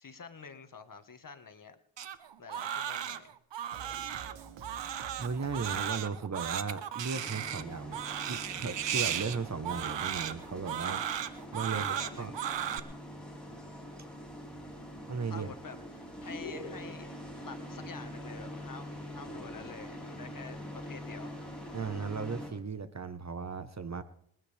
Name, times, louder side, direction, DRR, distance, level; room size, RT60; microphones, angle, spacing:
voice 1, 0.0-1.8 2.4-3.4 11.6-12.6 15.3-17.1 17.5-21.3, left 5 dB, 45° left, 9 dB, 1.7 m, -48 dB
Crying sobbing, 2.0-12.8, right 9 dB, 65° right, 1.1 m, -35 dB
sound 1, 3.7-6.4, right 6 dB, 85° right, 1.8 m, -49 dB
voice 2, 5.2-8.0 8.3-11.2 11.5-12.3 15.1-15.5 21.7-24.0, right 5 dB, 35° right, 12 dB, 1.3 m, -36 dB
sound 2, 7.1-22.5, equal, ahead, 6.9 m, -44 dB
26.5 x 9.4 x 3.5 m, 0.68 s
supercardioid pair, 40°, 46 cm